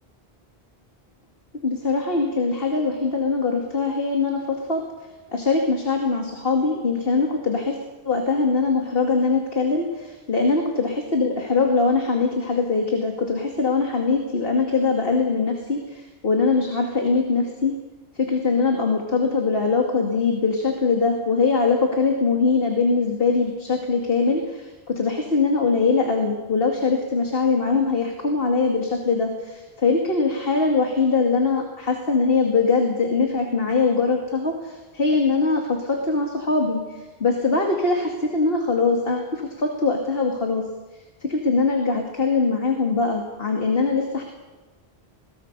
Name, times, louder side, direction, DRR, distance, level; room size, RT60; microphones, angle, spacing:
voice 1, 1.6-4.8 5.3-7.8 8.0-17.7 18.1-40.6 41.2-44.2, left 4 dB, 65° left, 2 dB, 2.5 m, -22 dB
22.0 x 18.0 x 6.7 m, 1.2 s
omnidirectional pair, 1.0 m